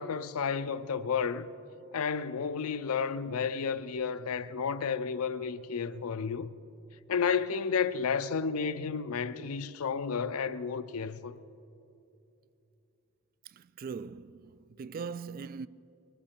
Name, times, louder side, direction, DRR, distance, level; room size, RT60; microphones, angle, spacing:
voice 1, 0.0-1.5 1.9-6.5 7.1-11.4, left 6 dB, 80° left, 0.5 m, -32 dB
voice 2, 13.5-15.7, right 5 dB, 40° right, 0.3 m, -41 dB
19.5 x 13.5 x 4.5 m
head